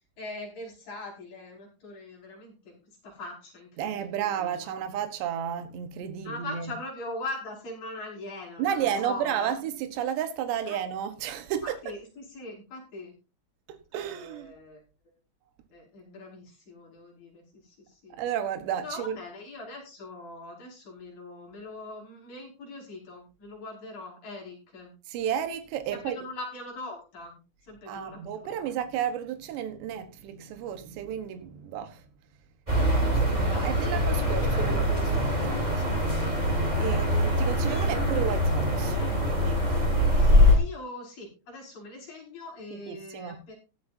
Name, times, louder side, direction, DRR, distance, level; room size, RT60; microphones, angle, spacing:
voice 1, 0.2-2.8 3.0-4.7 6.2-9.5 10.7-10.8 11.6-13.1 14.0-14.8 15.7-18.2 18.8-24.9 25.9-28.5 32.7-34.7 36.2-36.4 36.8-37.6 40.1-43.6, left 2 dB, 50° left, 6.9 m, -42 dB
voice 2, 3.8-6.7 8.6-11.8 13.7-14.5 18.1-19.2 25.1-26.2 27.9-32.0 33.0-36.0 36.8-39.0 39.3-39.8 42.7-43.4, right 9 dB, 80° right, 3.4 m, -32 dB
sound 1, 32.7-40.6, left 1 dB, 10° right, 3.3 m, -23 dB
16.0 x 12.5 x 2.7 m
omnidirectional pair, 5.0 m